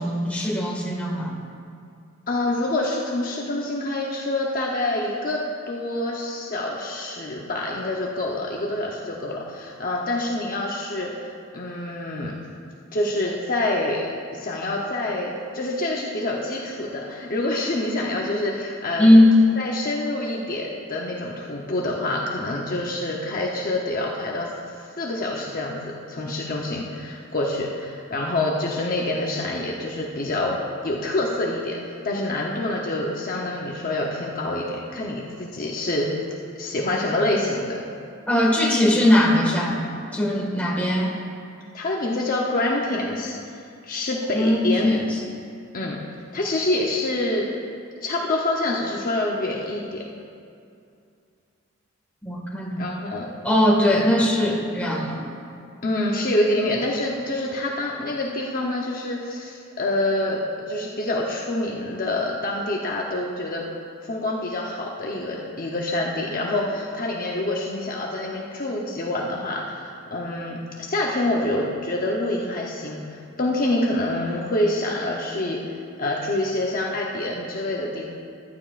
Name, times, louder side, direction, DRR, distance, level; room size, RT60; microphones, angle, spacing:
voice 1, 0.0-1.4 19.0-19.4 38.3-39.9 40.1-41.2 44.3-45.2 52.2-52.8 53.4-55.2, left 1 dB, 5° left, -4 dB, 1.8 m, -19 dB
voice 2, 2.3-12.3 12.9-14.0 14.3-19.1 19.6-24.5 25.0-30.6 30.8-36.1 36.5-37.8 41.7-44.9 45.7-46.0 46.3-47.5 48.0-50.0 52.8-53.3 55.8-63.7 64.0-75.6 76.0-78.1, left 1 dB, 45° left, -2 dB, 0.9 m, -26 dB
14.5 x 12.5 x 2.5 m, 2.4 s
head